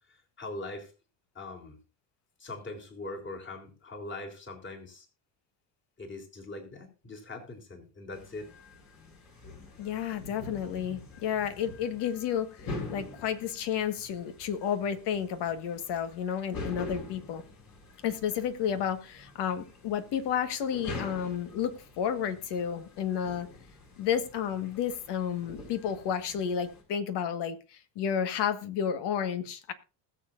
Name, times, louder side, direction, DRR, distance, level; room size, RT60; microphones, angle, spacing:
voice 1, 0.4-0.9 1.4-1.8 2.4-5.1 6.0-8.5 10.6-10.7 12.9-13.0, left 2 dB, 25° left, 3 dB, 3.7 m, -41 dB
sound 1, 8.1-26.8, left 3 dB, 50° left, 5.8 m, -45 dB
voice 2, 9.8-17.4 18.0-23.5 24.0-29.7, left 8 dB, 65° left, 10 dB, 1.7 m, -31 dB
20.5 x 7.3 x 2.6 m, 0.33 s
supercardioid pair, 95°, 43 cm